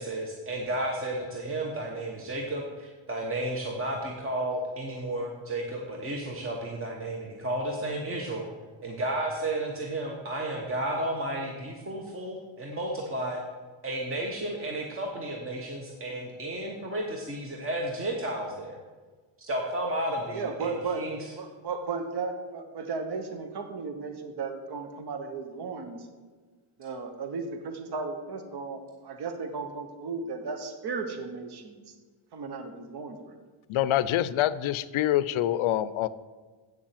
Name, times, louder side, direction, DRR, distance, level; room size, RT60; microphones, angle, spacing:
voice 1, 0.0-8.4 8.8-13.4 13.8-18.8 19.4-21.3, right 1 dB, 25° right, 0 dB, 1.0 m, -32 dB
voice 2, 20.3-21.0 21.4-26.1 26.8-31.8 32.3-33.4, right 4 dB, 50° right, 6 dB, 1.1 m, -35 dB
voice 3, 33.7-36.1, left 13 dB, 75° left, 17 dB, 0.6 m, -25 dB
8.1 x 7.2 x 7.4 m, 1.4 s
wide cardioid pair, 165°, 49 cm